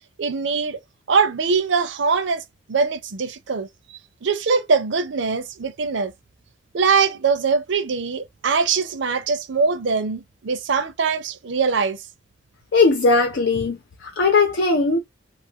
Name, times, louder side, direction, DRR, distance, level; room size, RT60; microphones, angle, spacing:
voice 1, 0.2-0.8 1.1-2.4 2.7-6.1 6.7-12.0, right 5 dB, 65° right, 0.5 m, -22 dB
voice 2, 12.7-15.0, left 3 dB, 65° left, 0.5 m, -19 dB
2.7 x 2.5 x 2.8 m
head